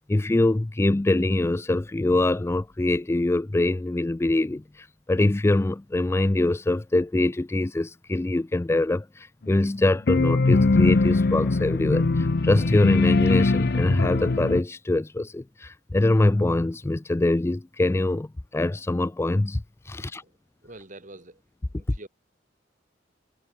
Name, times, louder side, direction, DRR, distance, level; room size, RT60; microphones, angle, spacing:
voice 1, 0.1-19.6 19.9-20.2, left 2 dB, 15° left, 0.3 m, -24 dB
sound 1, 10.1-14.6, left 3 dB, 60° left, 0.7 m, -21 dB
voice 2, 19.9-21.4 21.8-22.1, right 2 dB, 45° right, 5.3 m, -46 dB
head